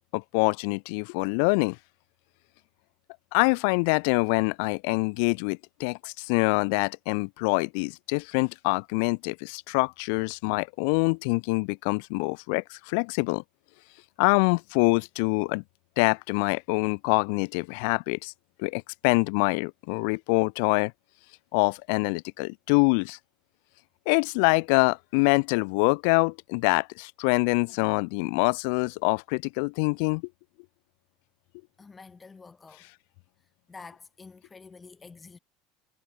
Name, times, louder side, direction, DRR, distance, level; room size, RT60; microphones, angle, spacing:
voice 1, 0.1-1.8 3.3-13.4 14.2-15.6 16.0-18.3 18.6-20.9 21.5-23.2 24.1-30.2, left 36 dB, 65° left, 0.4 m, -25 dB
voice 2, 31.8-32.9 33.7-35.4, left 4 dB, 20° left, 3.3 m, -48 dB
figure-of-eight pair, 70°, 0 cm